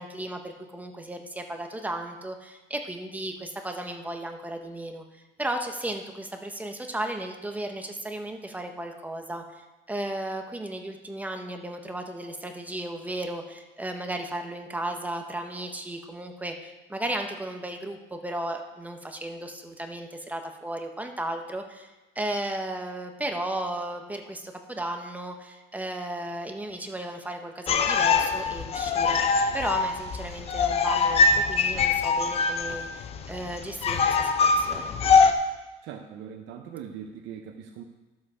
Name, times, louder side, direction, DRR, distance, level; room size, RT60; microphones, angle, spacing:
voice 1, 0.0-34.9, right 1 dB, 10° right, 4 dB, 0.7 m, -35 dB
sound 1, 27.7-35.3, left 4 dB, 30° left, 0.6 m, -23 dB
voice 2, 35.8-37.8, right 8 dB, 70° right, 5 dB, 0.7 m, -41 dB
11.5 x 7.5 x 4.8 m, 1.1 s
cardioid pair, 165°, 20 cm